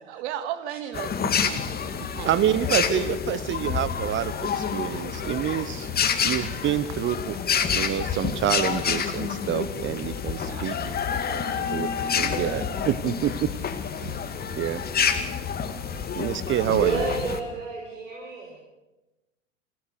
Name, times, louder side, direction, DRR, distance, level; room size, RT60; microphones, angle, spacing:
voice 1, 0.1-1.1 1.4-1.6 2.2-2.3 10.4-11.7 12.0-12.7 14.0-14.2, right 11 dB, 60° right, 9 dB, 2.0 m, -36 dB
sound 1, 0.9-17.4, left 7 dB, 25° left, 2.2 m, -28 dB
voice 2, 2.2-5.9 6.2-7.4 7.7-10.7 11.7-11.9 12.1-13.5 14.5-14.8 16.1-17.0, right 11 dB, 30° right, 15 dB, 0.9 m, -27 dB
voice 3, 16.7-18.6, right 4 dB, 85° right, 0 dB, 5.6 m, -29 dB
27.5 x 17.0 x 6.8 m, 1.0 s
hypercardioid pair, 90°, 38 cm